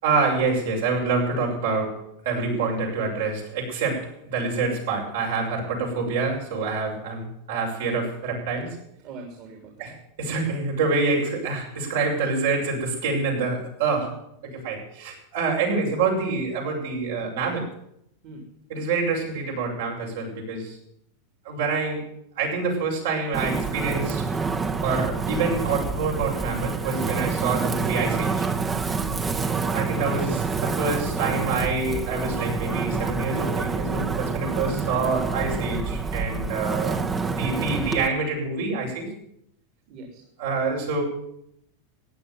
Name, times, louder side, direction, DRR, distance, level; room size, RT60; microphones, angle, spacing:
voice 1, 0.0-8.8 9.8-17.7 18.7-20.8 21.4-22.0 22.3-24.2 24.8-28.5 29.7-37.0 37.3-39.1 40.4-41.0, right 4 dB, 75° right, -1 dB, 6.5 m, -26 dB
voice 2, 9.0-9.9 13.0-13.1 14.0-14.1 18.2-18.5 29.0-29.2 39.9-40.2, right 3 dB, 50° right, 2 dB, 3.5 m, -42 dB
Wind, 23.3-38.1, right 4 dB, 20° right, 1.3 m, -27 dB
15.0 x 9.5 x 9.2 m, 0.76 s
hypercardioid pair, 105°, 0 cm